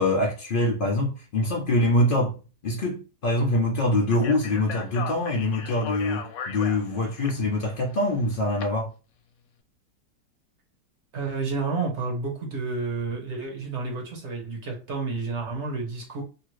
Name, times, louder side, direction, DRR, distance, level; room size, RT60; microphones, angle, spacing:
voice 1, 0.0-2.4 2.6-8.9, left 1 dB, 85° left, 0.4 m, -24 dB
Speech, 4.1-8.6, left 6 dB, 70° left, 0.9 m, -37 dB
voice 2, 11.1-16.2, right 4 dB, 55° right, 0.9 m, -30 dB
2.9 x 2.4 x 3.0 m
omnidirectional pair, 1.8 m